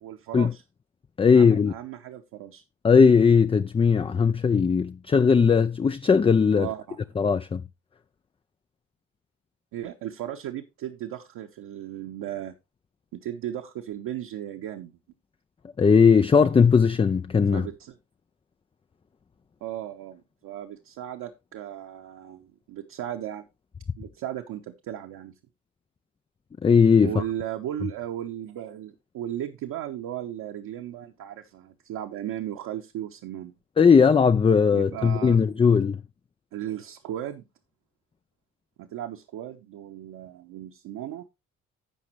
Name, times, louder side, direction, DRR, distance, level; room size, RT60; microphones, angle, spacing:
voice 1, 0.0-0.6 1.3-2.6 6.5-7.0 9.7-12.5 13.1-14.9 17.5-17.9 19.6-23.4 24.0-25.3 27.0-33.5 34.7-35.4 36.5-37.4 38.8-41.2, right 11 dB, 60° right, 1.2 m, -36 dB
voice 2, 1.2-1.7 2.8-6.7 7.2-7.6 15.8-17.7 26.6-27.1 33.8-36.0, left 5 dB, 15° left, 0.4 m, -18 dB
15.0 x 5.9 x 3.1 m
figure-of-eight pair, 45°, 39 cm